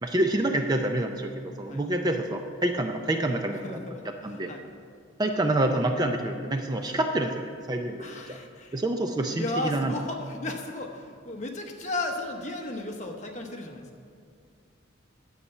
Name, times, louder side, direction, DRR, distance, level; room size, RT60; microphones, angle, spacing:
voice 1, 0.0-3.8 4.1-4.5 5.2-8.4 8.7-9.9, right 1 dB, 20° right, 5 dB, 0.4 m, -27 dB
voice 2, 3.6-4.6 8.0-8.8 9.3-13.8, left 2 dB, 35° left, 2 dB, 1.0 m, -34 dB
9.9 x 8.0 x 5.5 m, 2.2 s
head